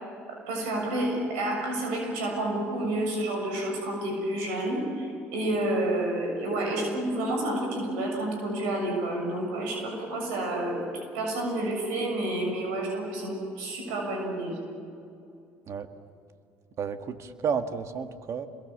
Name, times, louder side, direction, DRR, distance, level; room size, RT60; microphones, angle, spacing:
voice 1, 0.3-10.8 11.1-14.6, right 1 dB, 80° right, 1 dB, 6.9 m, -29 dB
voice 2, 16.8-18.5, right 6 dB, 50° right, 7 dB, 1.8 m, -31 dB
27.0 x 22.0 x 7.3 m, 2.6 s
hypercardioid pair, 70°, 6 cm